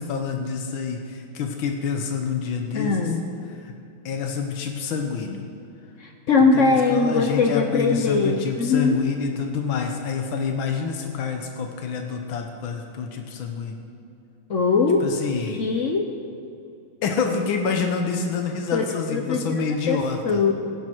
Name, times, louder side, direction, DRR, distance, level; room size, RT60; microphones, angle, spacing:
voice 1, 0.0-3.1 3.6-3.7 4.1-5.4 6.5-13.8 15.0-15.6 17.0-20.4, left 5 dB, 90° left, 4 dB, 1.8 m, -27 dB
voice 2, 2.7-3.2 6.0-9.0 14.5-15.1 15.5-16.1 18.7-18.8 19.1-19.6 19.9-20.0 20.2-20.5, left 4 dB, 60° left, 4 dB, 0.8 m, -21 dB
16.0 x 10.5 x 4.6 m, 2.6 s
omnidirectional pair, 2.1 m